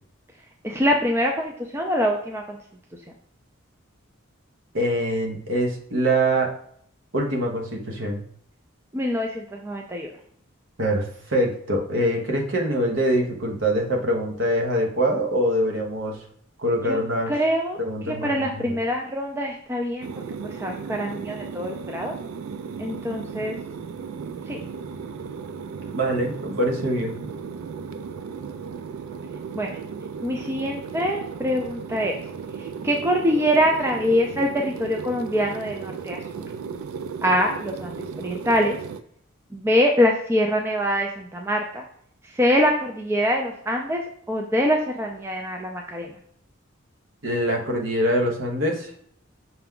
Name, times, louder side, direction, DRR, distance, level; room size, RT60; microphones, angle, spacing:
voice 1, 0.6-2.6 8.9-10.1 16.8-17.8 18.1-20.1 20.4-22.1 22.8-23.6 24.5-24.6 29.5-29.7 30.2-32.2 32.6-36.4 37.2-38.8 39.5-41.8 42.2-46.2, equal, 10° right, 1 dB, 0.3 m, -24 dB
voice 2, 4.7-6.5 7.1-8.2 10.8-16.2 16.6-17.3 17.8-18.7 25.9-27.2 47.2-48.9, right 1 dB, 60° right, 1 dB, 0.9 m, -24 dB
sound 1, 20.0-39.0, right 6 dB, 85° right, 0.3 m, -35 dB
5.9 x 2.2 x 3.7 m, 0.64 s
head